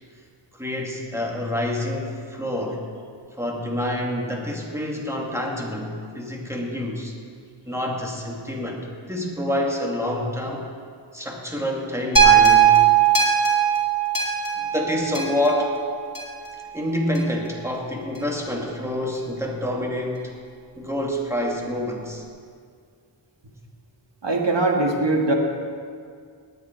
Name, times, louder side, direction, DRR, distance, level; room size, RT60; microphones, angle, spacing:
voice 1, 0.5-2.8 3.4-7.1 7.7-8.8 9.1-10.7 11.1-13.0 14.6-15.7 16.7-20.3 20.8-22.2, left 1 dB, 5° right, -1 dB, 2.4 m, -27 dB
sound 1, 12.2-16.5 17.2-17.3, right 8 dB, 45° left, 3.1 m, -18 dB
voice 2, 24.2-25.3, right 2 dB, 60° right, 1 dB, 2.0 m, -21 dB
18.5 x 9.6 x 4.6 m, 2.1 s
wide cardioid pair, 60°, 48 cm